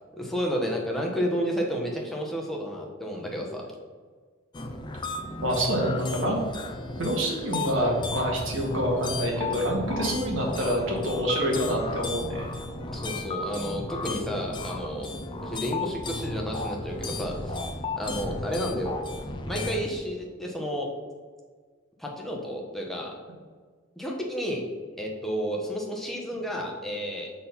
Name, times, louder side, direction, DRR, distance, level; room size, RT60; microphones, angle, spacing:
voice 1, 0.1-3.7 12.9-15.1 15.4-17.6 17.9-19.0 19.4-20.9 22.0-23.1 24.0-24.6 25.0-27.3, equal, ahead, -1 dB, 1.0 m, -31 dB
sound 1, 4.5-19.9, left 2 dB, 25° left, 0.5 m, -34 dB
voice 2, 5.4-6.4 7.0-12.5, equal, 75° right, -2 dB, 2.0 m, -27 dB
6.3 x 4.2 x 5.7 m, 1.5 s
head